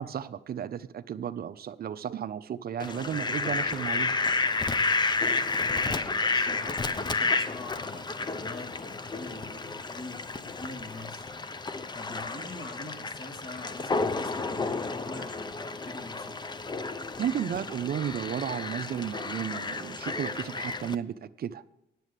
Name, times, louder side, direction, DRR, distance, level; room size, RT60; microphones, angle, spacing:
voice 1, 0.0-4.1 17.2-21.6, right 9 dB, 50° right, 12 dB, 0.6 m, -33 dB
Fowl, 2.8-20.9, left 3 dB, 20° left, 0.6 m, -31 dB
voice 2, 5.6-16.4, left 2 dB, 45° left, 3 dB, 2.3 m, -44 dB
9.2 x 7.5 x 8.2 m, 0.89 s
cardioid pair, 90°, 20 cm